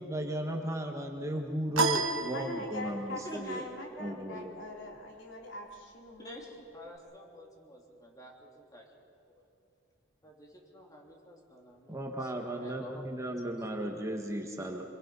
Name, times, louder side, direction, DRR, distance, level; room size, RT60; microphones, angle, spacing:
voice 1, 0.0-3.6 4.0-4.6 11.9-14.8, right 1 dB, 15° right, 2 dB, 1.6 m, -35 dB
sound 1, 1.8-3.1, right 3 dB, 80° right, 1.4 m, -30 dB
voice 2, 2.3-6.4, left 2 dB, 65° left, 0 dB, 3.4 m, -42 dB
voice 3, 3.1-3.7 3.9-4.2 6.2-8.9 10.2-13.3, equal, 20° left, 0 dB, 3.1 m, -49 dB
26.5 x 22.5 x 5.6 m, 2.5 s
head